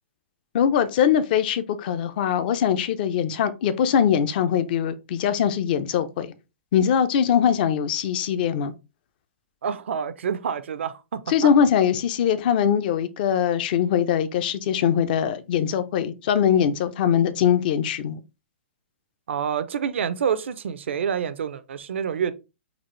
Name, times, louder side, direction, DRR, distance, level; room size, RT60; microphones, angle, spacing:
voice 1, 0.5-6.3 6.7-8.7 11.3-18.2, left 8 dB, 50° left, 0.5 m, -22 dB
voice 2, 9.6-11.5 19.3-22.3, right 7 dB, 75° right, 0.5 m, -27 dB
4.0 x 2.5 x 3.1 m
hypercardioid pair, 135°, 6 cm